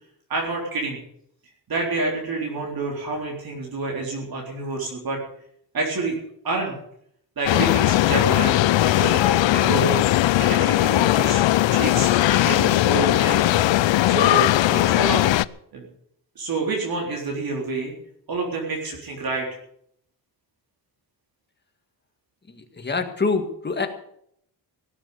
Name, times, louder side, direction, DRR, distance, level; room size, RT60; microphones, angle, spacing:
voice 1, 0.3-1.0 1.7-5.2 5.7-6.2 6.4-6.7 7.4-8.6 8.8-10.0 10.4-11.4 11.7-15.3 15.7-15.9 16.4-17.9 18.3-19.5, right 3 dB, 50° right, -1 dB, 3.9 m, -28 dB
sound 1, 7.5-15.4, left 15 dB, 85° left, 0.6 m, -19 dB
voice 2, 22.5-23.9, left 4 dB, 25° left, 5 dB, 1.8 m, -25 dB
17.5 x 8.2 x 8.4 m, 0.70 s
wide cardioid pair, 155°, 44 cm